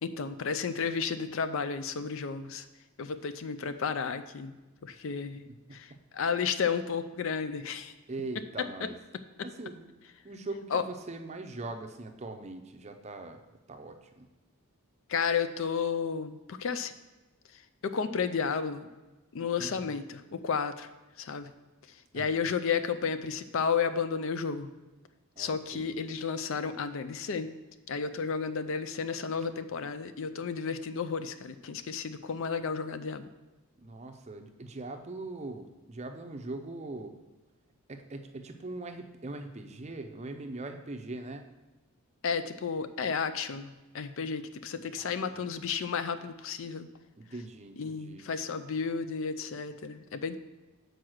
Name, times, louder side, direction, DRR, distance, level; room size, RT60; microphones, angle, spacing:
voice 1, 0.0-2.7 3.0-4.6 4.8-7.9 10.7-10.8 15.1-16.9 17.5-18.9 19.3-20.9 21.2-21.5 21.9-24.7 25.4-27.5 27.9-33.3 42.2-46.9 47.8-50.4, left 6 dB, 60° left, 12 dB, 0.4 m, -32 dB
voice 2, 5.5-6.0 8.1-8.9 9.4-13.4 13.7-14.3 19.6-19.9 22.1-22.5 25.4-25.9 33.8-37.1 37.9-41.5 45.0-45.3 47.2-48.3, right 2 dB, 30° right, 6 dB, 0.5 m, -41 dB
6.1 x 4.7 x 6.3 m, 1.1 s
head